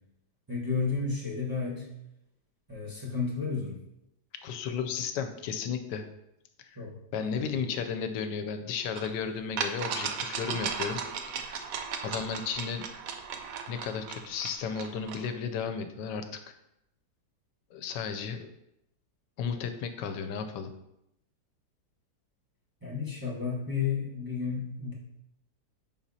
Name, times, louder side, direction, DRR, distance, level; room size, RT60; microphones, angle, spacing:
voice 1, 0.5-1.9 2.7-3.8 6.8-7.4 22.8-24.9, left 5 dB, 15° right, -6 dB, 1.1 m, -32 dB
voice 2, 4.4-6.0 6.6-6.8 7.1-11.0 11.5-11.6 12.0-12.8 13.7-16.5 17.7-18.5 19.4-20.7, left 6 dB, 80° left, 8 dB, 1.2 m, -34 dB
sound 1, 9.0-9.1 9.6-15.3, right 6 dB, 65° right, 0.9 m, -36 dB
7.0 x 5.4 x 2.7 m, 0.82 s
omnidirectional pair, 1.9 m